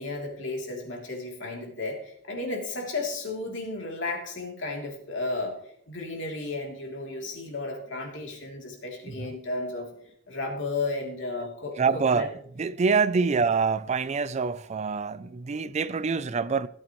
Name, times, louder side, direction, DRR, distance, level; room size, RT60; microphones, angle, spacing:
voice 1, 0.0-5.6 5.9-9.9 10.3-12.3 13.3-13.4, left 2 dB, 70° left, 3.0 m, -33 dB
voice 2, 11.8-12.3 12.6-16.7, right 5 dB, 35° right, 0.4 m, -26 dB
16.5 x 8.7 x 3.1 m
head